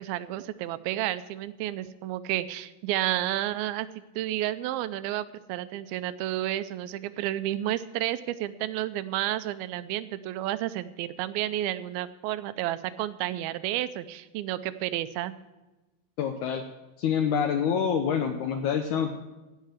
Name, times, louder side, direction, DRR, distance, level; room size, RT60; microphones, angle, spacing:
voice 1, 0.0-3.9 4.2-15.3, right 14 dB, 85° right, 13 dB, 2.4 m, -31 dB
voice 2, 16.2-16.6 17.0-19.1, left 7 dB, 75° left, 6 dB, 1.8 m, -26 dB
15.5 x 5.6 x 7.8 m, 1.1 s
omnidirectional pair, 4.3 m